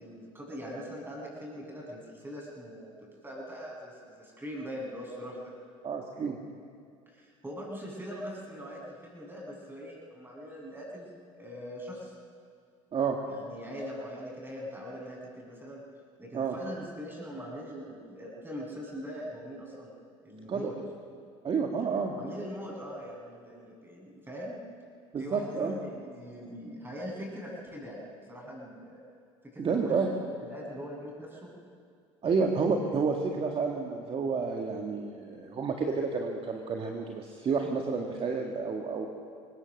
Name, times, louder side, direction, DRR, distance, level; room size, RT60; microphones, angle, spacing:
voice 1, 0.0-5.5 7.1-11.1 11.3-12.1 13.3-15.8 16.2-19.9 20.2-20.7 22.2-24.6 25.2-29.0 29.4-31.5, equal, 15° right, -2 dB, 7.2 m, -42 dB
voice 2, 5.8-6.4 12.9-13.2 16.3-16.5 20.5-20.7 21.4-22.2 25.1-25.7 29.6-30.1 32.2-39.1, right 5 dB, 35° right, 2 dB, 2.0 m, -30 dB
23.0 x 19.0 x 6.6 m, 2.3 s
hypercardioid pair, 85°, 16 cm